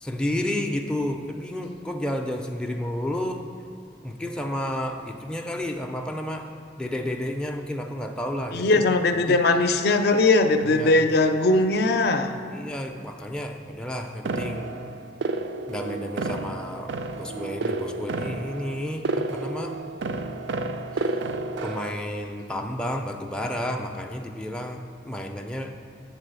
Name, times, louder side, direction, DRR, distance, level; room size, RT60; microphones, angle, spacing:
voice 1, 0.0-3.4 4.0-6.5 6.8-8.8 9.3-9.4 10.7-11.0 12.5-14.7 15.7-19.8 20.9-21.1 21.6-25.8, left 1 dB, 5° left, 2 dB, 0.4 m, -31 dB
voice 2, 8.5-12.4, left 2 dB, 60° left, 7 dB, 0.5 m, -20 dB
sound 1, 14.2-21.9, right 3 dB, 80° right, 0.4 m, -31 dB
8.2 x 3.9 x 6.7 m, 2.6 s
head